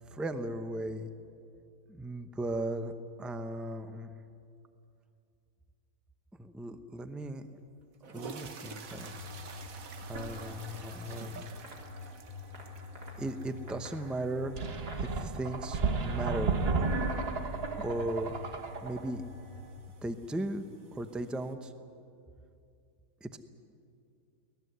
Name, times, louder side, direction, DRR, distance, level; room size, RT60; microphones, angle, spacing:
voice 1, 0.1-1.1 1.9-2.9 3.2-4.2 6.4-7.5 8.1-9.2 10.0-11.5 13.2-14.6 15.0-16.6 17.8-18.3 18.8-19.2 20.0-21.7 23.2-23.4, right 1 dB, ahead, 9 dB, 0.5 m, -37 dB
sound 1, 7.2-7.3 7.9-21.5, right 5 dB, 60° right, 1.7 m, -51 dB
sound 2, 8.8-19.7, equal, 85° right, 4.1 m, -44 dB
sound 3, 14.6-19.1, right 4 dB, 40° right, 1.3 m, -33 dB
24.0 x 19.0 x 8.1 m, 2.5 s
omnidirectional pair, 1.7 m